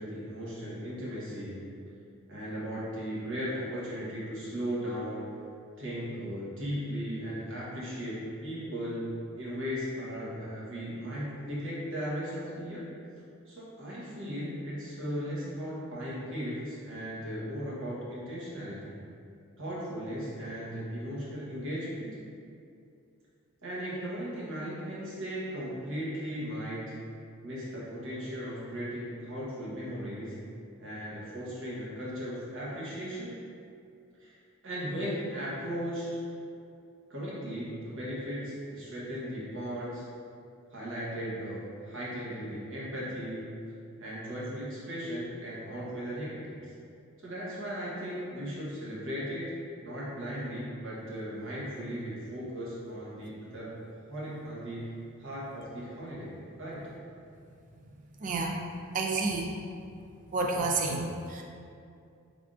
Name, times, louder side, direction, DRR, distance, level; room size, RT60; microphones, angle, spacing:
voice 1, 0.0-1.6 2.3-5.3 5.8-12.8 13.5-19.0 19.6-22.2 23.6-27.0 27.4-30.4 30.8-33.3 34.2-36.2 37.1-40.0 40.7-43.5 44.0-46.6 47.2-49.5 49.8-53.7 54.1-56.3 56.6-56.9, equal, 60° right, -7 dB, 1.0 m, -37 dB
voice 2, 58.2-58.5 58.9-59.5 60.3-61.4, right 3 dB, 40° right, 1 dB, 0.4 m, -29 dB
3.5 x 2.5 x 3.6 m, 2.5 s
head